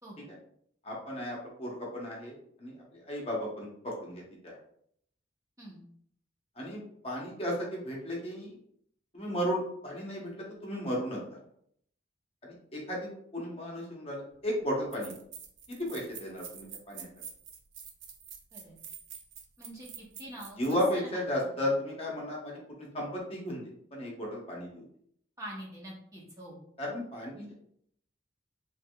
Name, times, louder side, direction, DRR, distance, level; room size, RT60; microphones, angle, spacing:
voice 1, 0.8-4.6 6.6-8.6 9.1-11.4 12.4-15.1 15.7-17.1 20.6-24.8 26.8-27.5, equal, 30° left, -3 dB, 0.9 m, -35 dB
sound 1, 14.3-14.4 14.9-20.8, right 7 dB, 85° right, 0.5 m, -47 dB
voice 2, 19.6-21.6 25.4-26.6, right 1 dB, 20° right, -4 dB, 0.7 m, -45 dB
3.4 x 3.2 x 2.2 m, 0.66 s
head